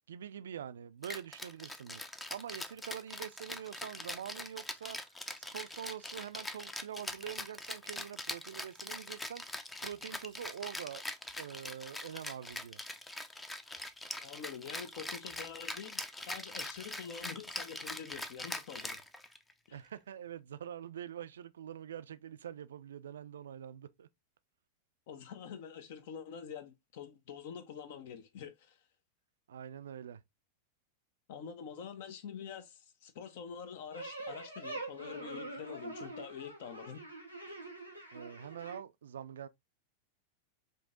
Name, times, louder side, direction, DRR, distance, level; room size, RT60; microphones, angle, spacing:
voice 1, 0.1-11.0 11.4-12.8 19.7-24.1 29.5-30.2 38.1-39.5, right 9 dB, 65° right, 0.3 m, -45 dB
Rattle (instrument), 1.0-19.5, left 2 dB, 10° left, 0.5 m, -43 dB
voice 2, 14.2-19.0 19.7-19.8 25.1-28.8 31.3-37.0, left 7 dB, 50° left, 0.6 m, -46 dB
sound 1, 33.9-38.8, right 2 dB, 85° left, 1.1 m, -44 dB
5.1 x 2.7 x 2.4 m
figure-of-eight pair, 90°, 0 cm